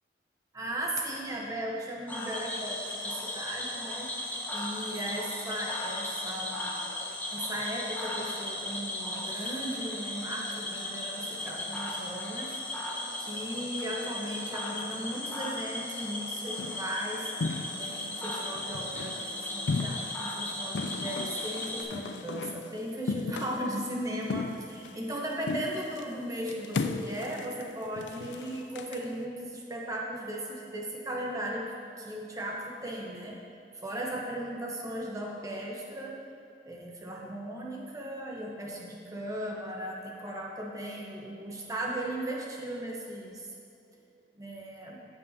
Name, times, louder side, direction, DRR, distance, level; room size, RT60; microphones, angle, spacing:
voice 1, 0.5-6.7 7.3-12.9 13.2-17.3 17.8-31.7 32.0-33.4 33.7-36.1 36.6-43.5 44.3-45.0, right 1 dB, 20° right, -2 dB, 1.0 m, -37 dB
Cricket / Frog, 2.1-21.8, left 1 dB, 10° left, 0.8 m, -36 dB
sound 1, 16.6-16.9 17.4-18.1 18.6-19.2 19.7-20.3 20.7-22.7 23.1-23.8 24.2-25.2 25.4-26.1 26.5-29.0, left 4 dB, 90° left, 0.4 m, -35 dB
15.5 x 5.3 x 2.8 m, 2.5 s
head